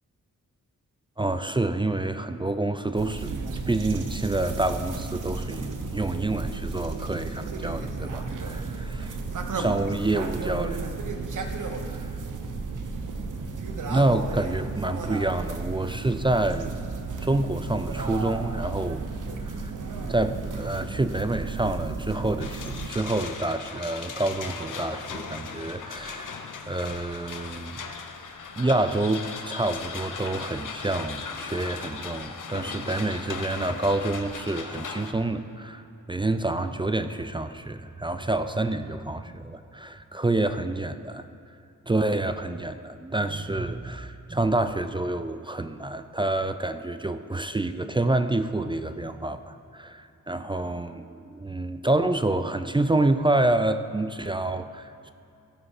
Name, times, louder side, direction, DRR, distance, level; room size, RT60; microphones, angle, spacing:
voice 1, 1.2-3.4 3.7-9.1 9.6-10.9 11.8-12.1 13.9-16.7 17.2-19.1 19.4-19.7 20.1-26.4 26.7-27.8 28.6-35.8 36.1-41.3 41.9-55.1, right 2 dB, 15° right, 10 dB, 0.4 m, -28 dB
sound 1, 2.9-22.9, right 4 dB, 70° right, 0.9 m, -33 dB
sound 2, 22.4-35.1, left 5 dB, 70° left, 0.8 m, -38 dB
16.0 x 5.5 x 4.9 m, 2.7 s
cardioid pair, 70°, 32 cm